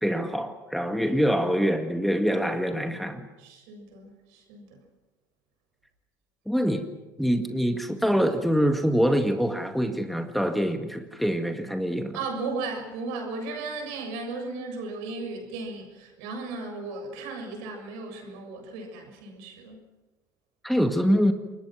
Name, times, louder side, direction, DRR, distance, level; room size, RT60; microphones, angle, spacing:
voice 1, 0.0-3.3 6.5-6.9 7.2-12.2 20.6-21.3, equal, ahead, 6 dB, 2.0 m, -25 dB
voice 2, 3.4-4.8 12.1-19.8, right 3 dB, 65° right, 4 dB, 7.1 m, -36 dB
28.5 x 22.0 x 6.2 m, 1.1 s
hypercardioid pair, 65°, 10 cm